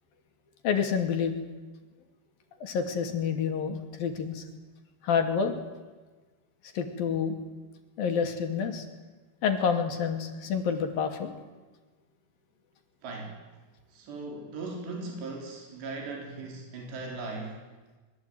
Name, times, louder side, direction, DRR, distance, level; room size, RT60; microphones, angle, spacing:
voice 1, 0.6-1.4 2.6-4.4 5.0-5.5 6.7-7.4 8.0-8.9 9.4-11.3, left 6 dB, 60° left, 6 dB, 4.1 m, -28 dB
voice 2, 13.0-13.5 13.9-17.7, right 3 dB, 75° right, 1 dB, 6.3 m, -38 dB
26.5 x 23.0 x 9.4 m, 1.3 s
omnidirectional pair, 4.9 m